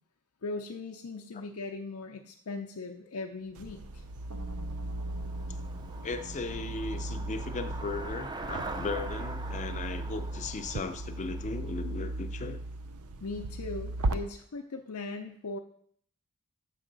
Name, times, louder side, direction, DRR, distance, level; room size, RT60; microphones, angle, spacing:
voice 1, 0.4-4.0 13.2-15.6, left 3 dB, 85° left, 3 dB, 0.6 m, -39 dB
Traffic noise roadway noise / Bicycle, 3.5-12.7, right 2 dB, 20° right, 0.4 m, -44 dB
sound 1, 3.6-14.1, right 2 dB, 85° right, 0.6 m, -37 dB
sound 2, 4.3-11.2, right 1 dB, 70° right, 1.0 m, -50 dB
voice 2, 6.0-12.6, left 3 dB, 35° left, 9 dB, 0.5 m, -37 dB
6.5 x 6.1 x 3.9 m, 0.62 s
head